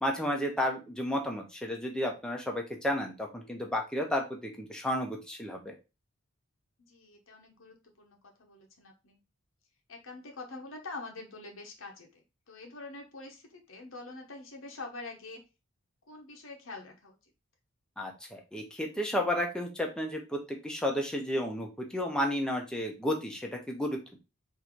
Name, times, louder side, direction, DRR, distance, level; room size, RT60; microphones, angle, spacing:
voice 1, 0.0-5.7 18.0-20.4 20.6-24.2, left 1 dB, 5° left, 1 dB, 0.8 m, -32 dB
voice 2, 6.9-9.2 9.9-15.4 16.1-17.2, left 3 dB, 65° left, 2 dB, 0.9 m, -45 dB
3.8 x 2.8 x 4.5 m, 0.28 s
head